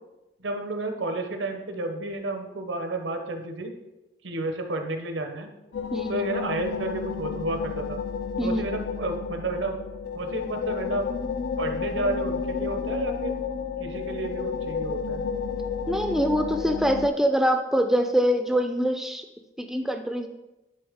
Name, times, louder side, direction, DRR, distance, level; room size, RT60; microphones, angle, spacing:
voice 1, 0.4-3.7 4.2-5.5 6.1-8.0 8.4-9.8 10.1-11.1 11.6-13.3 13.8-15.2, right 2 dB, 85° right, 5 dB, 0.9 m, -31 dB
sound 1, 5.7-17.1, left 6 dB, 70° left, 0.4 m, -31 dB
voice 2, 5.9-6.3 8.4-8.7 15.9-19.2 19.6-20.3, equal, ahead, 6 dB, 0.4 m, -24 dB
11.0 x 3.8 x 3.6 m, 0.99 s
head